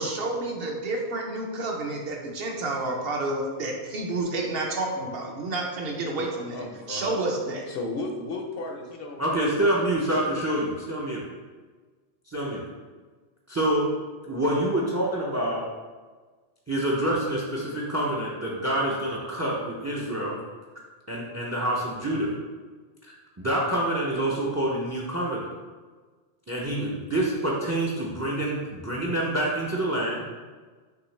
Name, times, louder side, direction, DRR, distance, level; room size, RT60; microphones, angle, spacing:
voice 1, 0.0-7.7, right 2 dB, 60° right, 0 dB, 0.9 m, -30 dB
voice 2, 6.5-7.2 7.7-9.5, left 2 dB, 65° left, 2 dB, 0.7 m, -34 dB
voice 3, 9.2-11.2 12.3-12.6 13.5-13.9 14.3-15.6 16.7-20.4 21.1-22.3 23.0-25.4 26.5-30.2, right 1 dB, 30° right, -3 dB, 0.3 m, -27 dB
6.0 x 2.8 x 3.2 m, 1.4 s
omnidirectional pair, 1.2 m